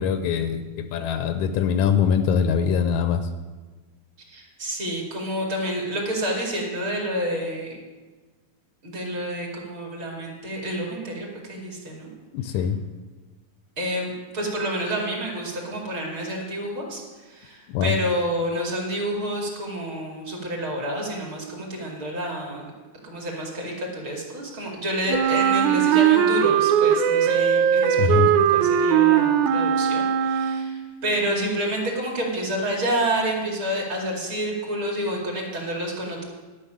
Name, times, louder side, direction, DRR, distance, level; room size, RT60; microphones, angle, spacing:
voice 1, 0.0-3.3 12.3-12.8 17.7-17.9 28.0-28.3 29.4-29.5, left 7 dB, 80° left, 9 dB, 1.9 m, -23 dB
voice 2, 4.3-7.8 8.8-12.1 13.8-22.7 23.0-36.2, right 1 dB, 40° right, -1 dB, 3.0 m, -29 dB
Wind instrument woodwind instrument, 25.1-30.9, right 9 dB, 75° right, 2.1 m, -19 dB
12.0 x 6.1 x 8.8 m, 1.3 s
omnidirectional pair, 3.6 m